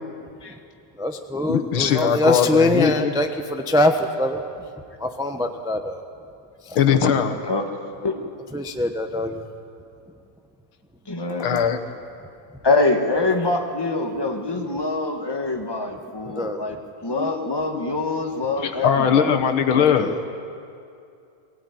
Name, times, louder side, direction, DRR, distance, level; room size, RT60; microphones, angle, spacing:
voice 1, 0.9-4.4 5.0-6.0 6.6-6.8 8.5-9.4 14.6-14.7 15.4-15.6 16.0-16.6 18.3-18.4 19.9-20.2, left 1 dB, 5° right, 5 dB, 0.4 m, -23 dB
voice 2, 1.5-3.1 6.8-7.3 11.4-11.8 17.2-17.5 18.6-20.1, left 8 dB, 85° left, 7 dB, 2.1 m, -20 dB
voice 3, 7.5-8.2 11.1-11.7 12.6-16.8 17.0-19.3 19.7-19.9, left 2 dB, 15° left, 3 dB, 1.4 m, -25 dB
22.5 x 17.0 x 9.4 m, 2.5 s
omnidirectional pair, 2.2 m